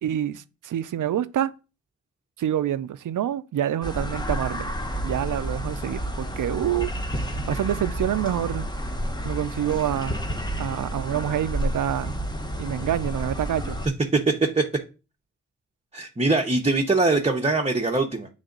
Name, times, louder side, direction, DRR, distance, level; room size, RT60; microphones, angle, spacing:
voice 1, 0.0-1.5 2.4-4.7 5.0-6.9 7.2-8.7 9.2-10.2 10.6-12.1 12.6-13.8, right 11 dB, 75° right, 0.6 m, -27 dB
sound 1, 3.8-13.9, equal, 15° left, 1.1 m, -30 dB
voice 2, 14.1-14.6 15.9-18.3, right 3 dB, 20° right, 0.9 m, -22 dB
8.1 x 3.5 x 3.9 m
cardioid pair, 75°, 32 cm